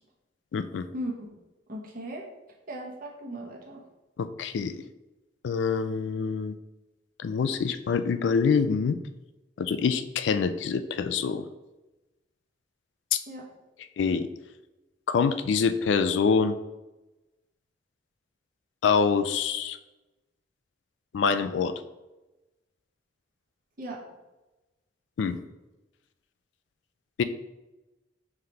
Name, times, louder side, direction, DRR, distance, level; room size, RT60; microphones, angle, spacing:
voice 1, 0.5-0.8 4.2-4.8 5.4-6.5 7.2-9.0 9.6-11.5 13.1-13.2 14.0-14.3 15.1-16.5 18.8-19.8 21.1-21.7 25.2-25.4 27.2-27.3, left 5 dB, 75° left, 11 dB, 0.3 m, -25 dB
voice 2, 1.7-2.2 2.7-3.8 13.3-13.4 23.8-24.0, right 1 dB, 50° right, -2 dB, 1.0 m, -37 dB
5.7 x 3.3 x 2.8 m, 1.0 s
head